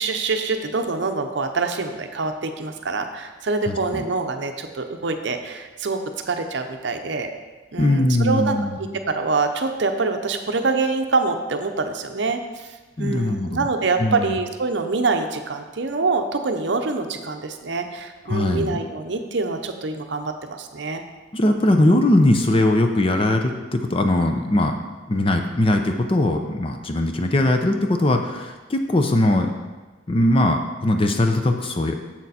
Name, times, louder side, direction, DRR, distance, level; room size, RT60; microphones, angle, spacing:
voice 1, 0.0-6.0 6.3-7.3 7.7-21.0, right 3 dB, 65° right, 6 dB, 0.6 m, -25 dB
voice 2, 3.7-4.0 7.8-8.8 13.0-13.6 14.0-14.4 18.3-18.8 21.3-29.5 30.1-32.0, left 1 dB, 25° left, 5 dB, 0.5 m, -20 dB
7.3 x 6.7 x 4.1 m, 1.2 s
head